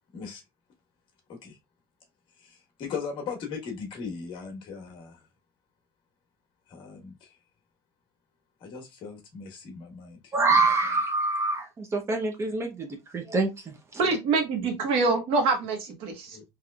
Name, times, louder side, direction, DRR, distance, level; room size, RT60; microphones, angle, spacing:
voice 1, 2.4-5.3 6.7-7.4 8.6-10.3 14.0-14.2 14.6-14.7 16.3-16.4, left 5 dB, 50° left, 1.3 m, -39 dB
voice 2, 10.3-12.9 13.1-13.7, right 3 dB, 25° right, 0.7 m, -25 dB
voice 3, 14.0-16.4, right 4 dB, 60° right, 1.1 m, -25 dB
3.6 x 3.1 x 2.3 m
cardioid pair, 130°, 11 cm